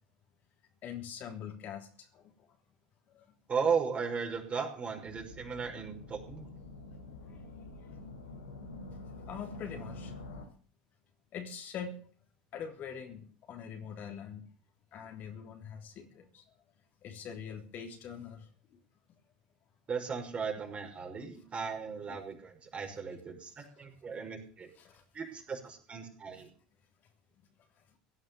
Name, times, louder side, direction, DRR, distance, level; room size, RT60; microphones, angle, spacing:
voice 1, 0.8-2.3 3.1-3.2 9.3-10.1 11.3-12.0 12.5-14.4 14.9-16.4 17.0-18.5 24.8-25.0, left 7 dB, 45° left, 3.4 m, -43 dB
voice 2, 3.5-6.5 19.9-24.7 25.1-26.5, right 6 dB, 30° right, 5.8 m, -36 dB
sound 1, 5.0-10.5, left 2 dB, 80° left, 3.7 m, -47 dB
17.0 x 9.4 x 7.2 m
hypercardioid pair, 75°, 4 cm